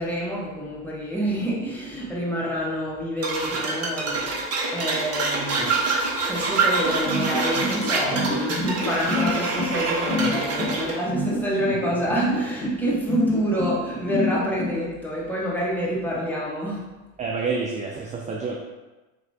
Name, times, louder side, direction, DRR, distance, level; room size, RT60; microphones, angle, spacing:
voice 1, 0.0-4.4 4.7-5.8 6.3-16.9, equal, 5° left, -6 dB, 1.1 m, -27 dB
sound 1, 3.2-11.0, right 3 dB, 40° right, 0.9 m, -26 dB
sound 2, 7.0-14.7, left 2 dB, 40° left, 1.0 m, -26 dB
voice 2, 17.2-18.6, right 4 dB, 20° right, -1 dB, 0.4 m, -28 dB
4.4 x 2.9 x 2.7 m, 1.1 s
supercardioid pair, 95°, 39 cm